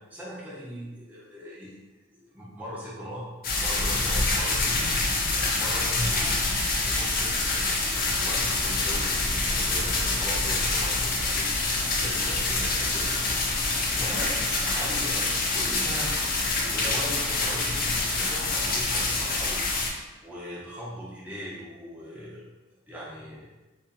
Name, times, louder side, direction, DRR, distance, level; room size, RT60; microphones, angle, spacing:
voice 1, 0.1-1.8 2.1-3.3 3.6-5.1 5.5-6.4 6.8-16.1 16.7-22.4 22.9-23.5, equal, 10° right, -8 dB, 0.9 m, -39 dB
sound 1, 3.4-19.9, left 3 dB, 50° left, 0.5 m, -26 dB
sound 2, 7.9-19.4, left 1 dB, 25° left, 1.0 m, -41 dB
3.9 x 2.8 x 2.7 m, 1.1 s
head